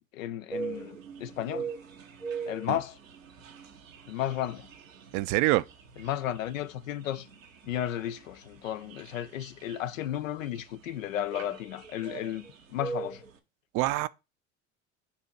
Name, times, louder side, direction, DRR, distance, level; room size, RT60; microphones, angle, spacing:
voice 1, 0.1-1.7 2.5-3.0 4.1-4.7 6.0-7.3 7.7-12.5 12.7-13.2, left 11 dB, 85° left, 0.6 m, -33 dB
sound 1, 0.5-13.4, right 5 dB, 90° right, 1.0 m, -42 dB
voice 2, 5.1-5.6 13.7-14.1, right 18 dB, 55° right, 0.5 m, -25 dB
6.8 x 2.8 x 5.8 m
hypercardioid pair, 70°, 39 cm